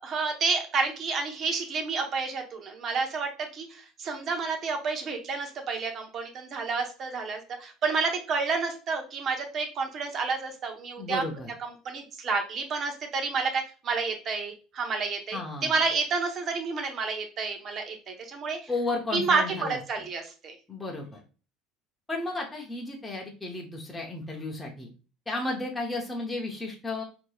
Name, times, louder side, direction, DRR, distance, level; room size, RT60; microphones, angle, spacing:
voice 1, 0.0-11.2 11.6-18.7 19.1-20.5, right 4 dB, 45° right, 4 dB, 0.9 m, -30 dB
voice 2, 11.0-11.5 15.3-15.7 18.7-19.8 20.7-21.2 22.1-24.9 25.3-27.0, left 2 dB, 10° left, -1 dB, 0.9 m, -33 dB
4.5 x 2.8 x 2.3 m, 0.36 s
supercardioid pair, 105°, 0 cm